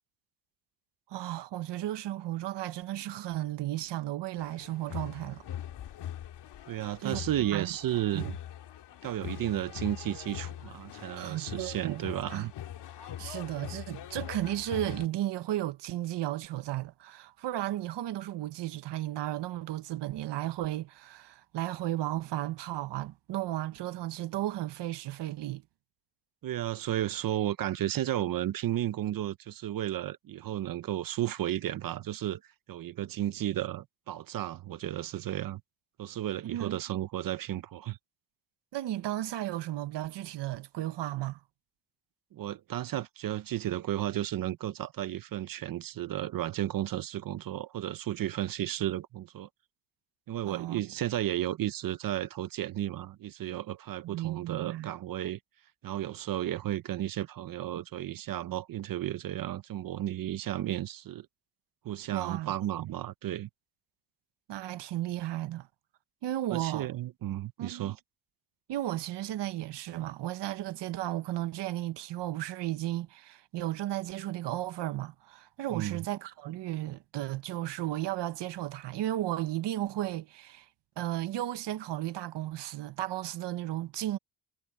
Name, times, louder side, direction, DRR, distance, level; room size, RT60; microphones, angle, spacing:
voice 1, 1.1-5.4 7.0-7.2 7.5-7.7 8.1-8.3 11.2-12.5 13.0-25.6 36.5-36.8 38.7-41.4 50.5-50.8 54.0-54.9 62.1-62.5 62.8-62.9 64.5-65.7 66.2-66.9 67.6-67.9 68.7-80.7 81.0-84.2, right 14 dB, 80° right, 1.1 m, -34 dB
sound 1, 4.4-15.1, left 11 dB, 75° left, 2.5 m, -42 dB
voice 2, 6.7-8.4 9.0-12.5 26.4-32.4 32.7-35.6 36.0-38.0 42.3-49.5 50.3-55.4 55.8-61.3 61.8-63.5 66.5-68.0 75.7-76.0, right 12 dB, 55° right, 0.7 m, -33 dB
cardioid pair, 145°, 41 cm